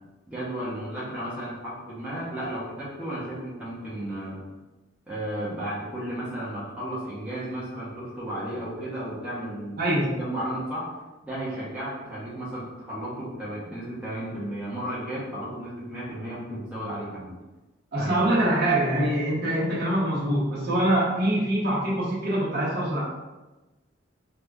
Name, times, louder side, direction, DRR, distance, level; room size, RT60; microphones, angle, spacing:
voice 1, 0.3-4.4 5.1-9.8 10.2-10.9 11.2-17.3 18.0-18.3, right 1 dB, 5° right, -9 dB, 0.8 m, -34 dB
voice 2, 9.8-10.2 17.9-23.0, right 1 dB, 55° right, -8 dB, 0.9 m, -24 dB
2.8 x 2.4 x 3.4 m, 1.1 s
head